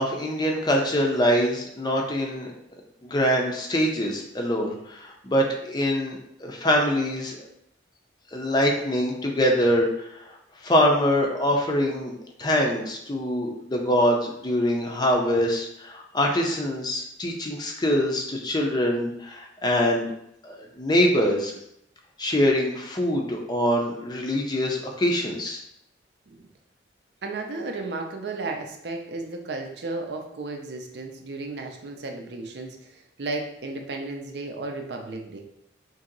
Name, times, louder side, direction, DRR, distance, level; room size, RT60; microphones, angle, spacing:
voice 1, 0.0-2.5 3.0-7.4 8.3-9.9 10.6-12.1 12.4-20.1 20.4-21.5 22.2-25.6, equal, 25° left, 1 dB, 0.4 m, -24 dB
voice 2, 27.2-35.4, right 3 dB, 65° right, 3 dB, 0.5 m, -34 dB
2.9 x 2.7 x 3.8 m, 0.76 s
head